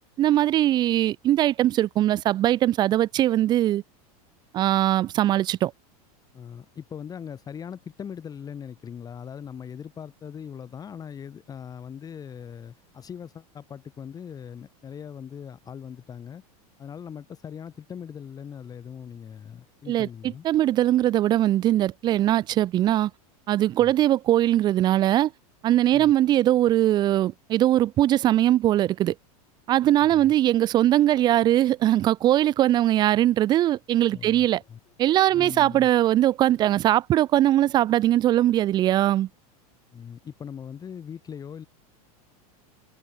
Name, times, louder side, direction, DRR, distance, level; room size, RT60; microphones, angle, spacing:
voice 1, 0.2-3.8 4.5-5.7 19.9-20.1 20.4-23.1 23.5-25.3 25.6-29.1 29.7-34.6 35.0-39.3, right 13 dB, 20° right, 0.4 m, -21 dB
voice 2, 6.3-16.4 16.8-20.4 23.8-23.9 25.9-26.1 30.1-30.3 34.1-34.8 35.3-35.9 39.9-41.7, left 7 dB, 20° left, 2.3 m, -40 dB
supercardioid pair, 150°, 20 cm